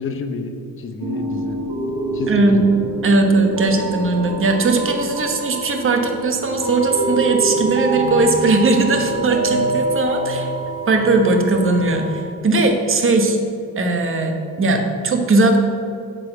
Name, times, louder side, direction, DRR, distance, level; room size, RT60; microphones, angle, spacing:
voice 1, 0.0-1.6 2.1-2.7, left 4 dB, 35° left, 5 dB, 1.0 m, -29 dB
sound 1, 1.0-11.8, right 2 dB, 75° right, 2.1 m, -26 dB
voice 2, 2.3-2.6 3.0-10.5 10.9-13.4 13.8-15.6, right 2 dB, 35° right, 4 dB, 1.3 m, -18 dB
sound 2, 6.6-12.2, right 3 dB, 55° left, 2.4 m, -31 dB
8.9 x 5.3 x 7.9 m, 2.4 s
cardioid pair, 140°, 36 cm